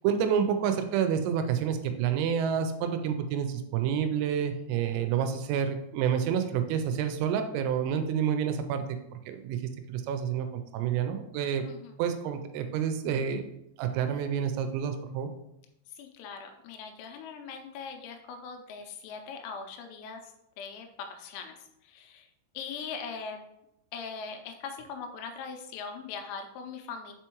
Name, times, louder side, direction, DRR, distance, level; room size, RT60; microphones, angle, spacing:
voice 1, 0.0-8.8 9.3-9.6 9.9-10.5 10.7-11.6 12.0-13.4 13.8-15.3, right 8 dB, 85° right, 7 dB, 3.2 m, -28 dB
voice 2, 11.7-12.0 15.9-21.6 21.8-22.3 22.5-23.5 23.9-27.1, left 5 dB, 85° left, 5 dB, 3.3 m, -41 dB
6.9 x 4.6 x 3.0 m, 0.83 s
omnidirectional pair, 6.0 m